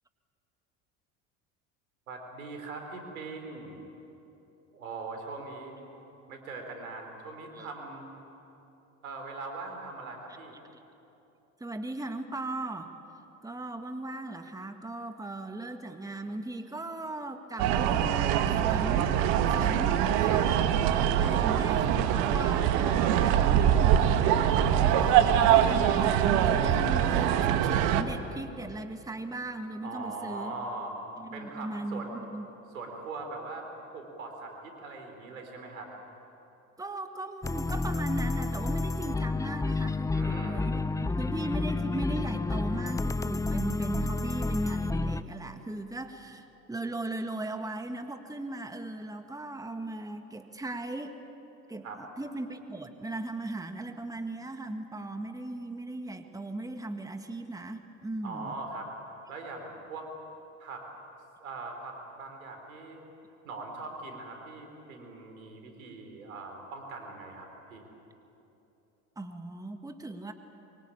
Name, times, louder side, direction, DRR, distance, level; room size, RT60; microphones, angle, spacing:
voice 1, 2.1-3.8 4.7-5.8 6.3-8.2 9.0-10.6 21.2-21.7 22.0-22.2 29.8-30.9 31.3-32.2 32.7-33.7 33.9-35.9 40.1-40.8 51.8-52.0 58.2-58.9 59.3-60.1 60.6-60.9 61.4-63.0 63.4-67.9, right 3 dB, 85° right, 4 dB, 4.3 m, -41 dB
voice 2, 11.6-12.9 13.4-19.2 19.5-20.5 21.2-30.5 31.2-32.5 36.8-51.2 51.7-58.6 69.2-70.3, right 2 dB, 10° right, 7 dB, 1.8 m, -38 dB
sound 1, 17.6-28.0, right 10 dB, 65° right, 1.6 m, -24 dB
sound 2, 37.4-45.2, left 3 dB, 10° left, 0.6 m, -30 dB
24.0 x 24.0 x 8.7 m, 3.0 s
hypercardioid pair, 70°, 40 cm